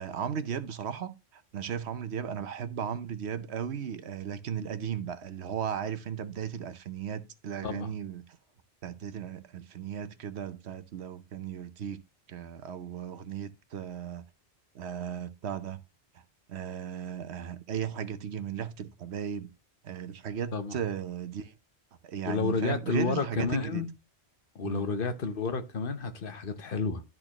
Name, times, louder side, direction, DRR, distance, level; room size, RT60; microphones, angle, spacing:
voice 1, 0.0-8.2 8.8-12.0 12.3-14.2 14.7-15.8 16.1-16.2 16.5-19.5 19.8-21.5 22.0-23.8 24.6-24.8, right 8 dB, 80° right, 1.0 m, -36 dB
voice 2, 22.2-23.9 24.5-27.0, left 4 dB, 55° left, 1.0 m, -31 dB
12.5 x 4.4 x 2.9 m
omnidirectional pair, 1.1 m